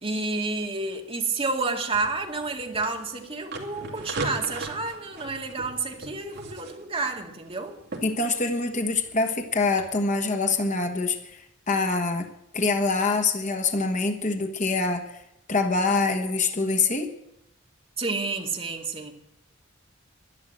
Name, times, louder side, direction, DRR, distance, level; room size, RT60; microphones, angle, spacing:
voice 1, 0.0-7.8 18.0-19.1, right 3 dB, 30° right, 3 dB, 2.0 m, -30 dB
sound 1, 1.9-9.8, right 2 dB, 55° right, 2.8 m, -39 dB
voice 2, 8.0-11.4 11.7-12.3 12.5-15.2 15.5-17.1, left 3 dB, 35° left, 5 dB, 1.3 m, -25 dB
11.5 x 11.5 x 7.6 m, 0.81 s
head